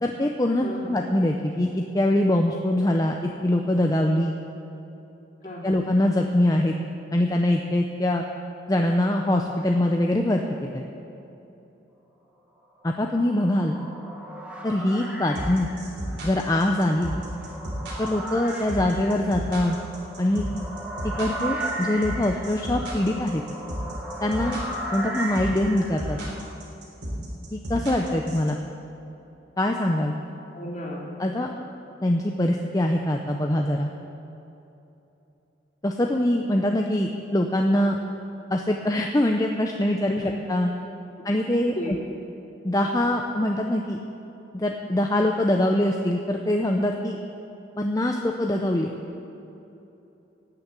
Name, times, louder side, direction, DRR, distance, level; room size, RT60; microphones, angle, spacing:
voice 1, 0.0-4.3 5.6-6.8 7.1-8.2 8.7-10.8 12.8-13.8 14.6-15.7 16.2-17.1 18.0-19.8 20.2-20.5 21.0-23.4 24.2-24.6 24.9-26.2 27.5-28.6 29.6-30.1 31.2-31.5 32.0-33.9 35.8-38.0 38.5-40.7 41.2-42.0 42.6-44.0 44.5-47.2 47.8-48.9, left 1 dB, 20° left, 2 dB, 0.6 m, -23 dB
voice 2, 0.6-0.9 5.4-5.8 30.5-31.2 40.2-40.4 41.7-42.0, left 1 dB, 40° left, -3 dB, 2.9 m, -34 dB
sound 1, 12.9-26.3, right 1 dB, 5° right, 1.7 m, -36 dB
sound 2, 15.3-28.5, equal, 60° right, 3.4 m, -33 dB
18.0 x 6.9 x 8.2 m, 2.9 s
head